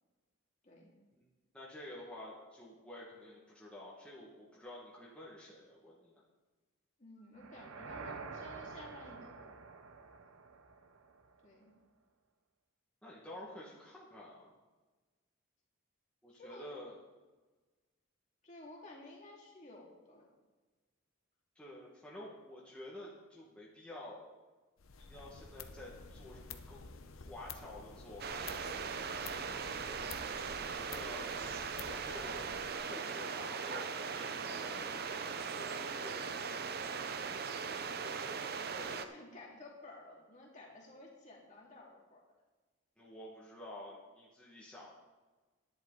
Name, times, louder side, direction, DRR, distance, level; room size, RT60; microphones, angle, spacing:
voice 1, 1.5-6.2 13.0-14.5 16.2-17.0 21.6-24.2 25.0-28.6 30.8-33.9 34.1-36.7 37.8-38.3 43.0-44.9, left 1 dB, 5° left, -7 dB, 1.6 m, -50 dB
voice 2, 7.0-9.6 11.4-11.7 16.3-16.6 18.4-20.3 29.4-30.2 38.7-42.2, left 2 dB, 35° left, -2 dB, 2.4 m, -53 dB
sound 1, 7.3-11.5, right 4 dB, 85° right, 0.7 m, -48 dB
sound 2, 24.8-32.8, left 5 dB, 80° left, 0.7 m, -51 dB
sound 3, 28.2-39.1, right 5 dB, 50° right, 0.6 m, -39 dB
11.0 x 10.5 x 3.9 m, 1.3 s
head